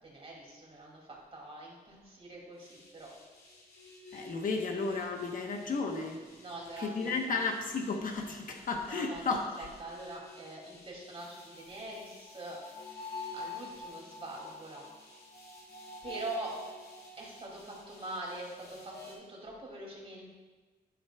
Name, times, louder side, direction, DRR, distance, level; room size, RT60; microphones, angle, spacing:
voice 1, 0.0-3.1 6.4-7.4 8.8-13.0 13.3-14.9 16.0-16.6 17.2-20.3, right 2 dB, 35° right, -2 dB, 2.4 m, -44 dB
sound 1, 2.6-19.1, left 2 dB, 80° left, 2.3 m, -49 dB
voice 2, 4.1-6.2 6.8-9.7, left 4 dB, 60° left, 3 dB, 1.0 m, -33 dB
11.0 x 9.5 x 2.3 m, 1.3 s
wide cardioid pair, 145°, 16 cm